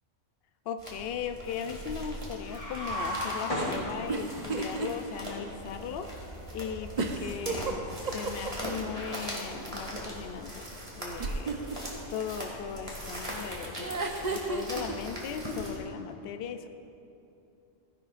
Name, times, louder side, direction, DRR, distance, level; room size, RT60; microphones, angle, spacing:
voice 1, 0.7-6.1 6.5-10.7 11.0-16.7, left 7 dB, 60° left, 8 dB, 0.7 m, -38 dB
sound 1, 0.8-15.8, equal, 25° right, 1.9 m, -40 dB
sound 2, 2.4-4.5, equal, 25° left, 2.6 m, -33 dB
sound 3, 4.1-4.9 5.3-5.4 7.0-8.7 11.2-11.8 13.8-14.9, right 4 dB, 45° right, 0.7 m, -32 dB
16.0 x 10.5 x 2.5 m, 2.8 s
omnidirectional pair, 1.3 m